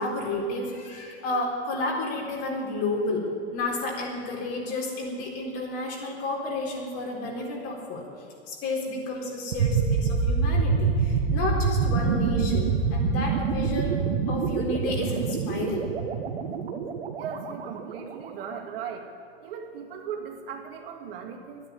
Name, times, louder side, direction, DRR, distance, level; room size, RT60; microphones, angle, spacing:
voice 1, 0.0-3.2 3.5-8.0 8.5-14.0 14.3-15.9, left 2 dB, 45° left, -1 dB, 4.1 m, -31 dB
sound 1, 9.5-18.4, right 5 dB, 75° right, 1.6 m, -26 dB
voice 2, 17.2-19.1 19.4-21.7, right 7 dB, 60° right, 3 dB, 2.0 m, -38 dB
11.5 x 10.0 x 9.6 m, 2.7 s
hypercardioid pair, 120°, 32 cm